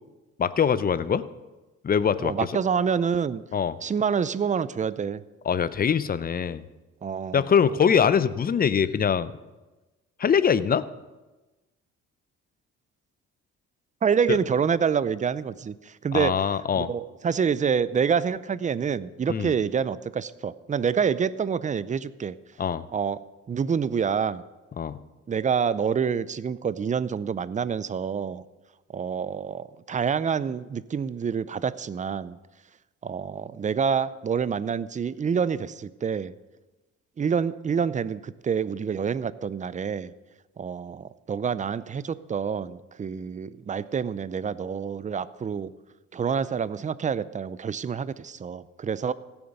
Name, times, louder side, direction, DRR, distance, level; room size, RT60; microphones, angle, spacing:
voice 1, 0.4-1.2 1.8-2.3 3.5-3.7 5.5-6.6 7.3-9.3 10.2-10.8 14.3-14.4 16.1-16.9 19.3-19.5 22.6-22.8 24.8-25.0, left 7 dB, 30° left, 15 dB, 0.6 m, -23 dB
voice 2, 2.2-3.4 3.8-5.2 7.0-7.5 14.0-16.3 16.8-22.3 22.9-24.4 25.3-28.4 28.9-32.4 33.0-36.3 37.2-40.1 40.6-45.7 46.1-49.1, right 6 dB, 25° right, 16 dB, 0.4 m, -27 dB
16.0 x 7.1 x 5.3 m, 1.1 s
cardioid pair, 90°, 30 cm